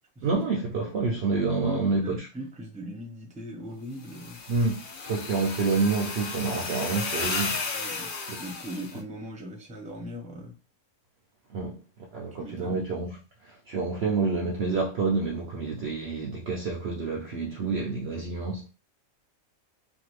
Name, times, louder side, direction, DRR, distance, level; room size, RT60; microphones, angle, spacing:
voice 1, 0.2-2.3 4.5-7.6 8.3-8.4 11.5-11.8 12.1-18.7, right 4 dB, 65° right, 0.7 m, -28 dB
voice 2, 1.5-4.4 7.7-8.1 8.4-10.6 12.4-12.8, equal, 5° right, 0.7 m, -39 dB
sound 1, 4.0-9.0, left 4 dB, 55° left, 0.6 m, -34 dB
2.6 x 2.5 x 3.1 m
omnidirectional pair, 1.5 m